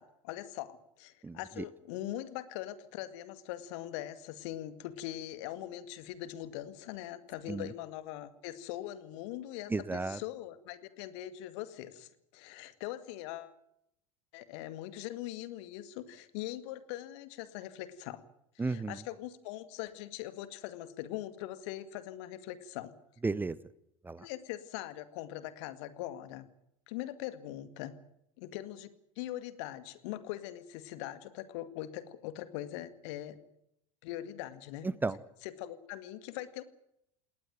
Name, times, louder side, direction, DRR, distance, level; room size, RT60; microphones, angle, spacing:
voice 1, 0.0-13.6 14.3-18.2 18.6-22.9 24.2-26.5 26.9-28.0 28.4-28.9 29.2-33.4 34.0-34.9 35.4-36.6, left 13 dB, 55° left, 13 dB, 2.0 m, -42 dB
voice 2, 1.2-1.6 7.5-7.7 9.7-10.2 18.6-19.0 23.2-23.6 24.0-24.3 34.8-35.2, right 3 dB, 10° right, 19 dB, 0.8 m, -34 dB
19.5 x 19.0 x 9.2 m, 0.78 s
figure-of-eight pair, 80°, 17 cm